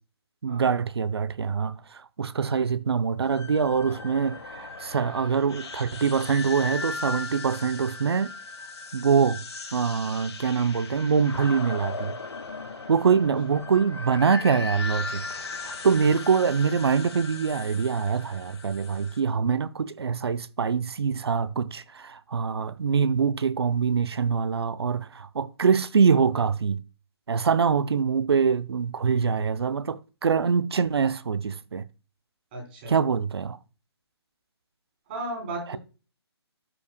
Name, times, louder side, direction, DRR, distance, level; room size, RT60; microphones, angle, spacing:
voice 1, 0.4-8.3 8.9-9.4 9.7-12.2 12.9-15.2 15.6-26.8 27.3-31.8 32.9-33.6 35.7-35.8, right 6 dB, 65° right, 0.6 m, -24 dB
sound 1, 3.2-19.2, left 4 dB, 70° left, 1.5 m, -38 dB
voice 2, 32.5-33.0 35.1-35.8, right 2 dB, 20° right, 3.4 m, -35 dB
13.5 x 5.5 x 2.2 m
hypercardioid pair, 170°, 14 cm